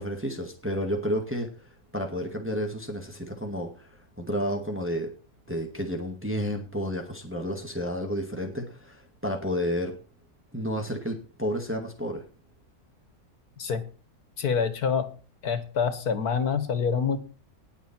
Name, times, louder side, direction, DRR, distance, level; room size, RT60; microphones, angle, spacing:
voice 1, 0.0-1.5 1.9-5.1 5.5-9.9 10.5-12.3, equal, 10° right, 3 dB, 2.2 m, -31 dB
voice 2, 14.4-15.1 15.4-17.2, left 6 dB, 75° left, 12 dB, 2.1 m, -26 dB
19.5 x 7.1 x 4.5 m, 0.36 s
omnidirectional pair, 1.6 m